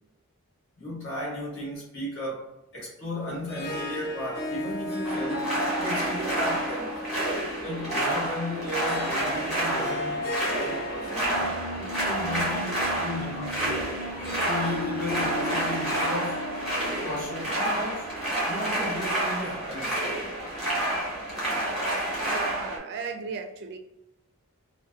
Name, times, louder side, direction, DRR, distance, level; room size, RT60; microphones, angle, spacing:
voice 1, 0.8-7.0 7.6-13.8 14.4-16.5 17.0-20.1, left 1 dB, 60° left, 1.1 m, -35 dB
Harp, 3.2-18.5, left 1 dB, 45° left, 0.6 m, -36 dB
sound 1, 5.0-22.8, right 1 dB, ahead, 1.0 m, -29 dB
sound 2, 11.2-18.7, equal, 85° left, 0.4 m, -41 dB
voice 2, 22.2-23.8, right 5 dB, 50° right, 0.3 m, -35 dB
2.6 x 2.1 x 2.3 m
head